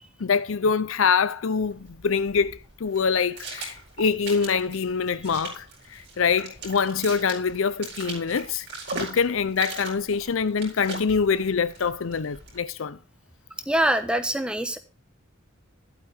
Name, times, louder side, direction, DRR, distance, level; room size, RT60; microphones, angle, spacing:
voice 1, 0.2-8.7 8.9-13.0, left 5 dB, 65° left, 0.5 m, -25 dB
sound 1, 1.6-12.6, right 3 dB, 55° right, 4.4 m, -40 dB
voice 2, 13.7-14.8, right 1 dB, 5° right, 1.0 m, -24 dB
11.5 x 8.4 x 3.4 m
head